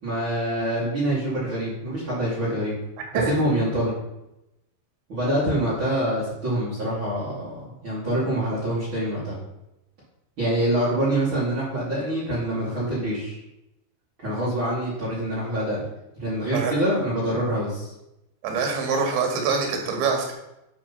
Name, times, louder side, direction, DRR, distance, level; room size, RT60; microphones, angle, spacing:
voice 1, 0.0-2.7 3.3-3.9 5.1-9.4 10.4-13.4 14.2-15.8 16.2-17.9, right 1 dB, 30° right, -9 dB, 3.1 m, -25 dB
voice 2, 18.4-20.3, right 5 dB, 85° right, 2 dB, 4.2 m, -24 dB
11.5 x 4.3 x 5.5 m, 0.88 s
omnidirectional pair, 5.1 m